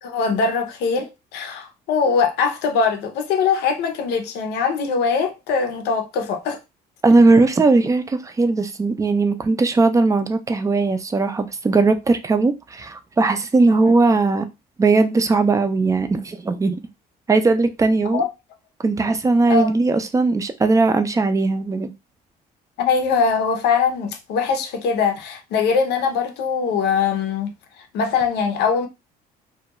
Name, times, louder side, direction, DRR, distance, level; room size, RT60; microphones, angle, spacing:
voice 1, 0.0-6.6 13.7-13.9 18.1-18.3 19.5-19.7 22.8-27.6 27.9-28.9, left 5 dB, 80° left, 0.6 m, -22 dB
voice 2, 7.0-14.5 14.8-16.8 17.3-18.2 18.8-21.9, right 3 dB, 20° right, 0.4 m, -18 dB
2.3 x 2.2 x 2.9 m
cardioid pair, 110°, 17 cm